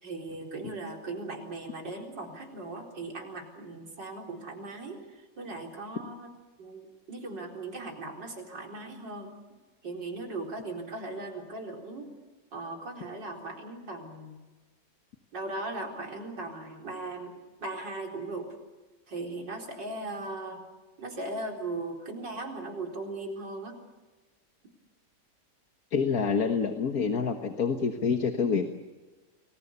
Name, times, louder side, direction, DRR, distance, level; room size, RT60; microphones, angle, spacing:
voice 1, 0.0-6.3 6.6-9.3 9.8-12.1 12.5-14.4 15.3-17.3 17.6-18.5 19.1-20.6 21.0-23.8, right 2 dB, 90° right, 1 dB, 4.9 m, -38 dB
voice 2, 25.9-28.7, left 5 dB, 60° left, 6 dB, 1.8 m, -27 dB
30.0 x 21.5 x 7.0 m, 1.2 s
omnidirectional pair, 1.9 m